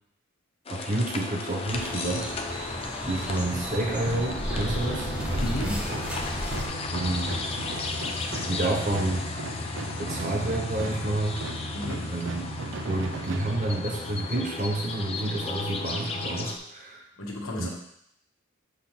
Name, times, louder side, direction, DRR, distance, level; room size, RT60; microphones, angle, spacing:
sound 1, 0.7-16.6, left 3 dB, 30° left, 0.5 m, -34 dB
voice 1, 0.7-2.7 3.0-5.1 6.9-7.4 8.4-9.3 10.0-11.4 12.1-12.5 12.9-17.0 17.6-17.7, right 2 dB, 40° right, 0 dB, 0.9 m, -29 dB
sound 2, 1.7-6.7, equal, 5° right, 0.9 m, -33 dB
sound 3, 4.1-14.2, right 3 dB, 65° right, 0.6 m, -38 dB
voice 2, 5.4-5.8 11.7-12.1 17.2-17.7, left 1 dB, 85° left, 0 dB, 1.4 m, -33 dB
6.4 x 3.3 x 5.8 m, 0.73 s
head